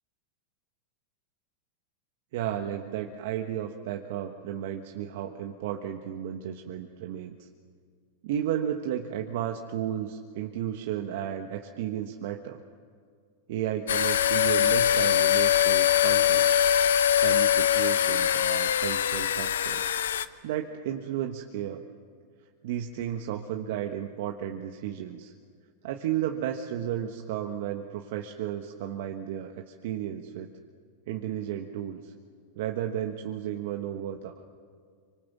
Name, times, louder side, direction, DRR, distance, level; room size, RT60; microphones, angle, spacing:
voice 1, 2.3-7.5 8.2-12.6 13.5-16.6 17.2-19.9 20.4-21.8 22.6-25.3 25.8-30.5 31.1-32.1 32.6-34.4, right 10 dB, 65° right, 4 dB, 1.4 m, -33 dB
sound 1, 13.9-20.3, left 10 dB, 80° left, 0.8 m, -23 dB
27.0 x 25.0 x 7.4 m, 2.1 s
hypercardioid pair, 110°, 0 cm